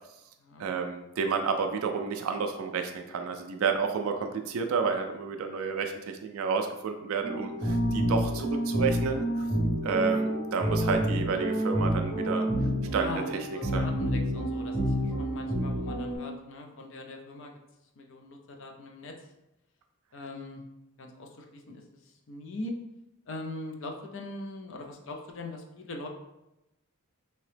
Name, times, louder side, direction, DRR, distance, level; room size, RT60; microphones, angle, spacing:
voice 1, 0.6-9.4 9.8-12.5 12.9-13.1 13.7-13.9, right 5 dB, 65° right, 5 dB, 0.3 m, -30 dB
sound 1, 7.2-16.2, equal, 30° left, 1.3 m, -29 dB
voice 2, 13.0-17.5 18.0-19.1 20.1-20.6 21.0-21.8 22.3-22.7 23.3-26.1, left 2 dB, 55° left, 3 dB, 0.4 m, -41 dB
2.9 x 2.8 x 3.2 m, 0.92 s
head